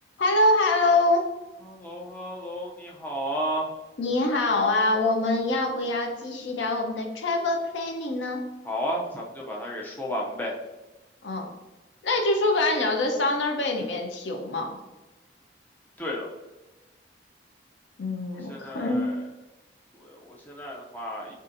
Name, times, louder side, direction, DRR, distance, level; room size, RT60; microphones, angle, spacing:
voice 1, 0.2-1.3 4.0-8.4 11.2-11.5 12.0-14.8 18.0-19.0, left 2 dB, 85° left, 3 dB, 0.5 m, -24 dB
voice 2, 1.6-3.7 8.6-10.6 16.0-16.3 18.5-19.2 19.9-21.3, equal, 10° left, -2 dB, 0.4 m, -33 dB
4.0 x 2.5 x 2.5 m, 1.1 s
head